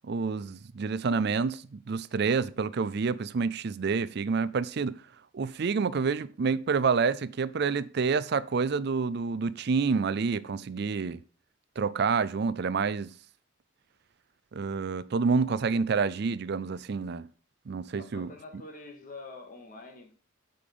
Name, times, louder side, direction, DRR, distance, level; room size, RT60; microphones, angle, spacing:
voice 1, 0.0-5.0 5.3-11.2 11.8-13.1 14.5-17.3 17.7-18.3, right 5 dB, 50° right, 0.4 m, -28 dB
voice 2, 18.0-20.1, left 3 dB, 40° left, 2.1 m, -46 dB
8.6 x 5.4 x 6.7 m
head